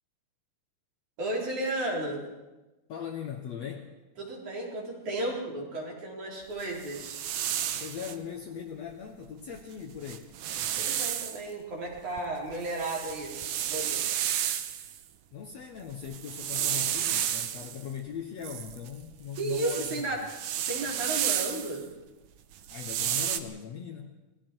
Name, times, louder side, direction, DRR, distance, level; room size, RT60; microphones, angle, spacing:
voice 1, 1.2-2.2 4.2-7.2 10.8-13.4 13.7-14.2 19.4-20.2 20.7-21.8, right 2 dB, 55° right, -2 dB, 5.7 m, -33 dB
voice 2, 2.9-3.9 7.8-10.3 15.3-20.2 22.7-24.2, left 8 dB, 60° left, 3 dB, 1.9 m, -39 dB
sound 1, 6.6-8.2 9.5-9.6 10.0-11.4 12.0-15.0 15.9-17.8 18.4-21.8 22.6-23.4, right 10 dB, 70° right, 2.0 m, -32 dB
27.5 x 20.5 x 4.7 m, 1.1 s
omnidirectional pair, 4.2 m